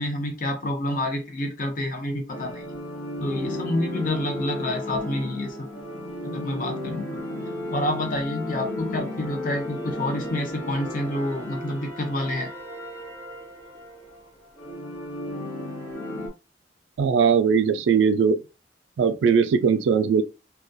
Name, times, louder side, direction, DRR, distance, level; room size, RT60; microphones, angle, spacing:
voice 1, 0.0-2.7 3.2-5.7 6.2-7.2 7.7-12.5, left 1 dB, 45° left, 0.6 m, -28 dB
sound 1, 2.3-16.3, left 1 dB, 75° left, 1.1 m, -34 dB
voice 2, 17.0-18.4 19.0-20.2, right 6 dB, 75° right, 0.3 m, -20 dB
2.3 x 2.2 x 2.6 m
head